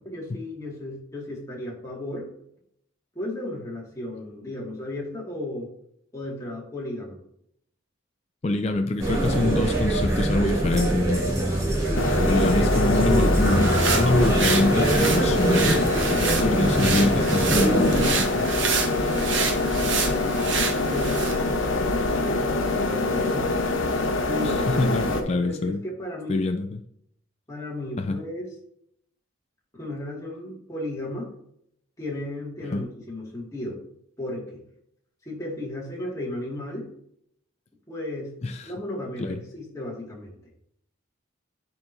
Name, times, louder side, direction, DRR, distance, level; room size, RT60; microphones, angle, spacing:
voice 1, 0.1-2.3 3.2-5.7 6.1-7.2 11.8-12.1 14.1-14.9 16.0-16.3 18.9-20.3 20.9-21.4 21.8-23.5 24.3-24.7 25.1-26.5 27.5-28.5 29.7-31.3 32.0-33.8 34.2-34.6 35.3-36.9 37.9-38.3 38.6-40.4, left 1 dB, 15° left, -4 dB, 1.9 m, -34 dB
voice 2, 8.4-11.5 12.3-16.1 16.4-18.5 24.4-25.8 26.3-26.8 28.0-28.2 32.7-32.8 38.4-38.7 39.2-39.4, left 2 dB, 30° left, 5 dB, 0.3 m, -25 dB
sound 1, 9.0-18.1, right 1 dB, 15° right, 2.0 m, -24 dB
sound 2, 11.9-25.2, left 2 dB, 80° left, 1.0 m, -25 dB
sound 3, 13.2-21.4, right 5 dB, 70° right, 1.0 m, -29 dB
10.5 x 4.4 x 2.6 m, 0.70 s
head